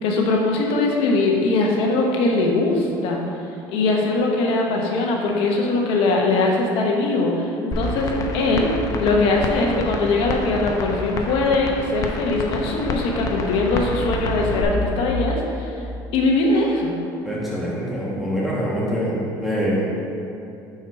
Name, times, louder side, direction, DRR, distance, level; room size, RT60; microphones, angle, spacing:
voice 1, 0.0-3.2 3.7-8.7 9.0-15.7 16.1-16.9, left 2 dB, 75° left, 0 dB, 1.1 m, -21 dB
sound 1, 7.7-14.6, left 2 dB, 40° left, 0.7 m, -28 dB
voice 2, 17.2-20.0, equal, ahead, -7 dB, 1.2 m, -24 dB
5.8 x 4.6 x 4.7 m, 2.7 s
cardioid pair, 110°, 9 cm